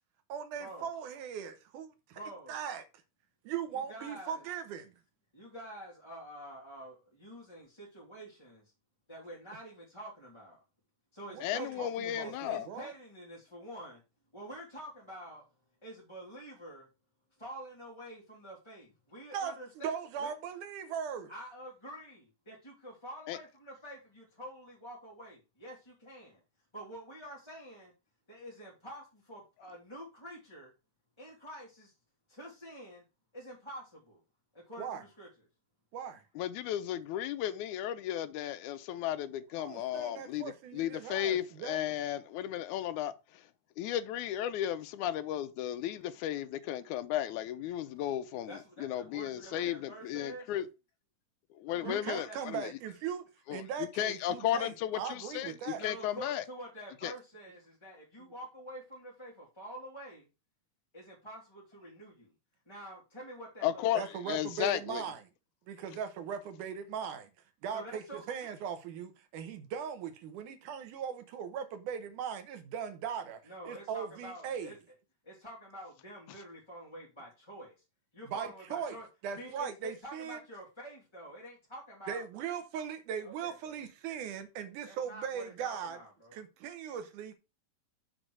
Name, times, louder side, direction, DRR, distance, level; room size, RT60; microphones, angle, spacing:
voice 1, 0.3-2.2 2.5-2.9 3.4-4.9 11.3-12.9 19.3-21.3 34.8-35.0 35.9-36.2 39.6-41.9 51.9-55.8 63.9-65.2 65.7-67.3 67.6-74.7 78.3-79.0 79.2-80.4 82.1-86.0 86.3-87.3, right 7 dB, 80° right, 2.5 m, -39 dB
voice 2, 2.1-2.6 3.7-4.4 5.3-8.7 9.1-10.6 11.1-14.0 14.3-15.4 15.8-16.9 17.4-19.9 20.2-20.3 21.3-26.4 26.7-27.9 28.3-30.7 31.2-31.9 32.3-33.0 33.3-34.2 34.5-35.3 47.6-47.7 48.5-50.5 51.8-52.4 55.7-60.3 60.9-62.3 62.7-64.0 67.7-68.2 73.5-74.8 75.2-77.8 78.1-79.1 79.4-82.2 83.2-83.8 84.8-86.4, right 1 dB, 10° left, 2.1 m, -47 dB
voice 3, 11.4-12.7 23.3-23.4 36.4-43.4 43.8-50.7 51.5-52.7 53.5-56.4 57.0-57.1 63.6-65.0, left 11 dB, 80° left, 2.0 m, -34 dB
6.6 x 4.1 x 6.2 m
omnidirectional pair, 3.6 m